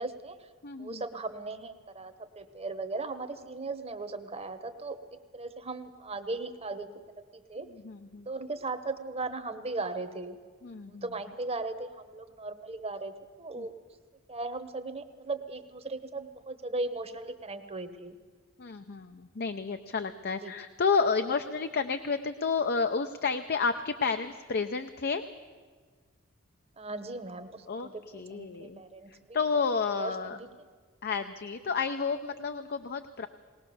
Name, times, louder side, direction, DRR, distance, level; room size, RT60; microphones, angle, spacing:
voice 1, 0.0-0.5 0.8-5.0 5.3-6.9 7.3-7.7 8.3-10.4 10.9-13.7 14.3-18.2 20.4-20.5 26.8-29.7 29.9-30.5, right 3 dB, 30° right, 9 dB, 1.0 m, -37 dB
voice 2, 0.6-1.0 7.8-8.3 10.6-11.0 13.6-13.7 18.6-25.2 27.7-27.9 28.1-28.8 29.3-30.4 31.0-33.3, left 5 dB, 45° left, 8 dB, 0.6 m, -30 dB
20.0 x 19.0 x 6.9 m, 1.6 s
head